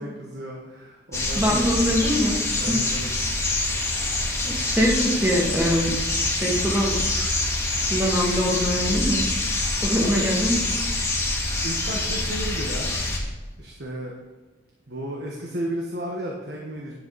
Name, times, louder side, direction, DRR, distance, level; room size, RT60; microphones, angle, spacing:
voice 1, 0.0-1.9 2.6-3.1 10.0-10.4 11.6-12.9 13.6-14.1 14.9-16.9, right 1 dB, 65° right, -2 dB, 1.4 m, -33 dB
sound 1, 1.1-13.2, left 2 dB, 15° left, 1.9 m, -25 dB
voice 2, 1.3-2.4 2.7-2.8 4.4-5.9 6.4-7.0 7.9-9.2 9.8-10.6, equal, 10° right, -2 dB, 1.9 m, -23 dB
10.5 x 8.0 x 4.1 m, 1.2 s
head